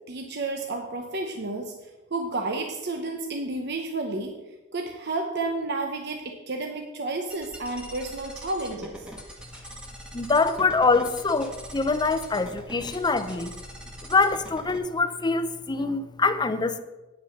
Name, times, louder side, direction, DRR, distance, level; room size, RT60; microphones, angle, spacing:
voice 1, 0.1-1.8 2.1-4.4 4.7-9.1, right 2 dB, 60° right, 3 dB, 0.9 m, -31 dB
sound 1, 7.3-14.8, equal, 5° right, 1.4 m, -43 dB
voice 2, 10.1-13.6 14.0-16.8, left 3 dB, 20° left, 11 dB, 0.6 m, -24 dB
9.5 x 6.1 x 7.1 m, 1.1 s
head